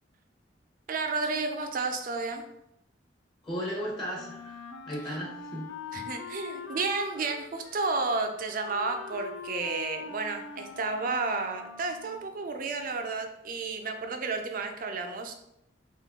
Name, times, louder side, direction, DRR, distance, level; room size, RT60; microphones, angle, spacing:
voice 1, 0.9-2.4 5.9-15.3, right 3 dB, 50° right, 5 dB, 0.5 m, -32 dB
voice 2, 3.4-4.6 4.9-6.1, equal, 25° left, -5 dB, 0.9 m, -36 dB
Wind instrument woodwind instrument, 4.1-12.3, left 5 dB, 70° left, 0.5 m, -43 dB
3.7 x 2.7 x 3.5 m, 0.81 s
head